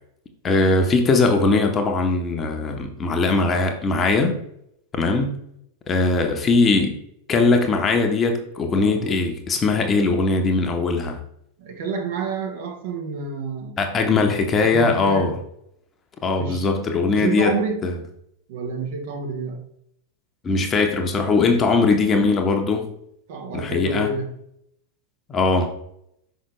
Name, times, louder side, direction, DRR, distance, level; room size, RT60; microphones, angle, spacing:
voice 1, 0.4-4.4 4.9-5.4 5.9-7.0 7.3-11.2 13.8-15.3 16.2-17.6 17.8-17.9 20.4-22.9 23.5-24.1 25.3-25.7, left 3 dB, 25° left, 4 dB, 1.1 m, -20 dB
voice 2, 8.7-9.2 11.6-14.2 14.6-15.3 16.4-16.7 17.1-17.9 18.5-19.6 23.3-24.4, right 4 dB, 55° right, 3 dB, 1.3 m, -29 dB
5.8 x 5.6 x 3.3 m, 0.74 s
figure-of-eight pair, 90°, 0 cm